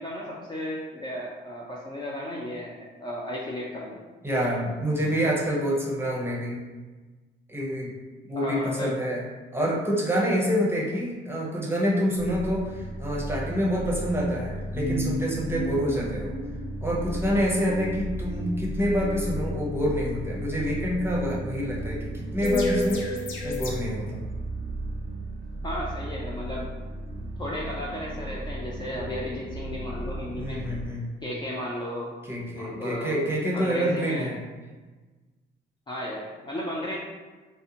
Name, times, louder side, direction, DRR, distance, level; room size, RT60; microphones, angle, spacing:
voice 1, 0.0-4.0 8.4-9.0 25.6-26.7 27.4-30.6 31.2-32.1 32.6-33.2 33.5-34.3 35.9-37.0, left 1 dB, 20° left, -4 dB, 0.4 m, -34 dB
voice 2, 4.2-6.6 7.5-7.9 8.3-9.2 9.5-16.3 16.8-23.0 23.4-24.2 30.4-31.1 32.3-34.4, equal, 10° right, -4 dB, 0.7 m, -27 dB
sound 1, 12.2-30.9, right 1 dB, 75° right, 0.5 m, -35 dB
sound 2, 14.7-23.8, left 1 dB, 90° left, 0.5 m, -35 dB
2.5 x 2.1 x 2.7 m, 1.3 s
cardioid pair, 90°, 20 cm